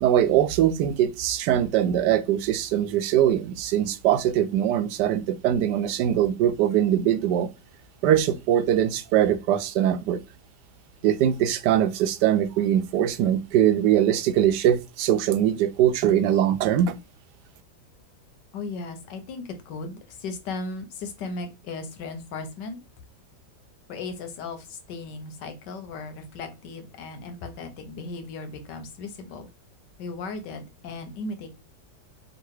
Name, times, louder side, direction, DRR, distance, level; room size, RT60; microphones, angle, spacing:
voice 1, 0.0-7.5 8.0-10.2 11.0-17.0, right 10 dB, 80° right, 1.2 m, -22 dB
voice 2, 18.5-22.8 23.9-29.5 30.0-31.5, left 3 dB, 85° left, 1.5 m, -36 dB
3.8 x 2.5 x 4.6 m
omnidirectional pair, 1.8 m